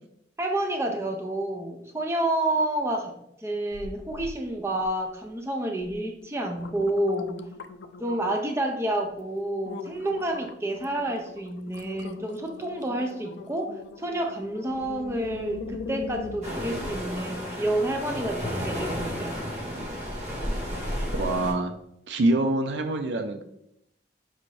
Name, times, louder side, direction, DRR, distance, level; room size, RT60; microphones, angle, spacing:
voice 1, 0.4-7.4 8.0-19.5, right 1 dB, 15° right, 3 dB, 0.4 m, -29 dB
sound 1, 3.7-4.4 4.7-5.3 5.8-5.9 6.3-8.6 9.1-9.2 9.7-17.2 17.6-17.7, left 4 dB, 80° left, 0.3 m, -41 dB
sound 2, 16.4-21.5, equal, 40° right, 1.0 m, -32 dB
voice 2, 21.1-21.7 22.1-23.4, right 2 dB, 80° right, 6 dB, 0.4 m, -25 dB
5.5 x 2.5 x 3.1 m, 0.80 s
head